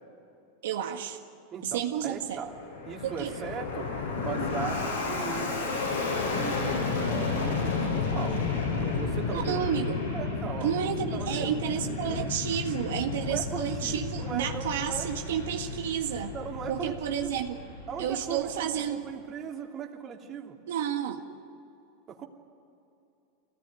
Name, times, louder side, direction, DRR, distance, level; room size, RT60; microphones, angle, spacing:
voice 1, 0.6-1.2 1.6-2.4 3.0-3.3 9.3-10.0 10.6-16.3 16.7-17.6 18.0-19.0 20.7-21.2, right 9 dB, 85° right, 3 dB, 1.8 m, -31 dB
voice 2, 1.5-2.5 2.9-8.4 8.8-9.7 10.1-12.3 13.2-15.1 16.3-17.3 17.9-20.6 22.1-22.3, right 7 dB, 30° right, 1 dB, 2.8 m, -39 dB
Fixed-wing aircraft airplane, 2.3-18.9, left 4 dB, 90° left, 7.2 m, -32 dB
24.5 x 18.0 x 10.0 m, 2.8 s
supercardioid pair, 135°, 0 cm